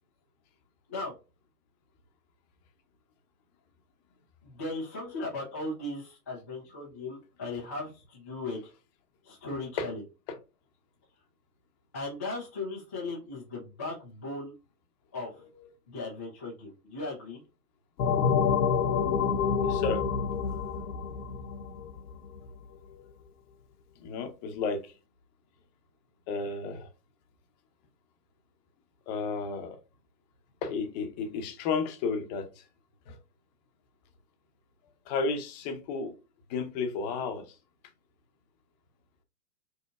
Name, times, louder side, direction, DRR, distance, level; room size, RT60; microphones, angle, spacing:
voice 1, 4.4-8.7 9.2-10.0 11.9-14.5 15.1-15.5 15.9-17.4, left 2 dB, 10° left, 0.3 m, -37 dB
sound 1, 18.0-22.4, left 6 dB, 70° left, 0.9 m, -27 dB
voice 2, 19.6-20.0 22.7-23.0 24.0-24.9 26.3-26.9 29.1-29.8 30.6-32.5 33.1-33.2 35.1-36.1 36.5-37.5, left 4 dB, 25° left, 0.7 m, -32 dB
5.3 x 2.9 x 2.3 m
hypercardioid pair, 135°, 48 cm